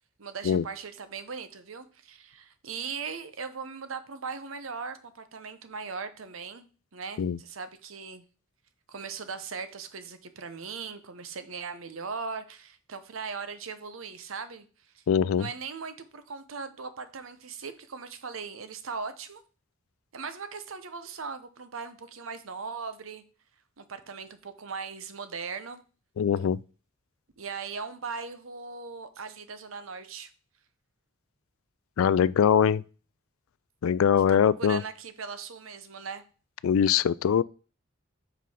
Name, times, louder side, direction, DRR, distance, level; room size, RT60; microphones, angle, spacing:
voice 1, 0.2-6.7 6.9-8.2 8.9-14.7 14.9-15.0 15.4-19.4 20.1-23.2 23.8-25.8 27.4-30.3 34.3-36.2, right 5 dB, 80° right, 0.8 m, -39 dB
voice 2, 15.1-15.5 26.2-26.6 32.0-32.8 33.8-34.8 36.6-37.4, left 7 dB, 85° left, 0.3 m, -22 dB
5.4 x 5.3 x 5.6 m
head